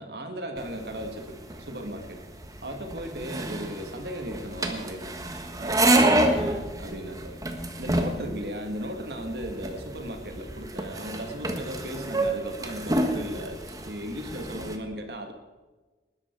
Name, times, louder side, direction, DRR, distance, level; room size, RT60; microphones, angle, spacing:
voice 1, 0.0-2.2 2.6-5.2 5.6-7.4 7.8-15.3, equal, 65° right, 5 dB, 2.1 m, -36 dB
sound 1, 0.6-14.8, right 1 dB, 20° right, 1.3 m, -29 dB
19.5 x 12.0 x 4.7 m, 1.3 s
head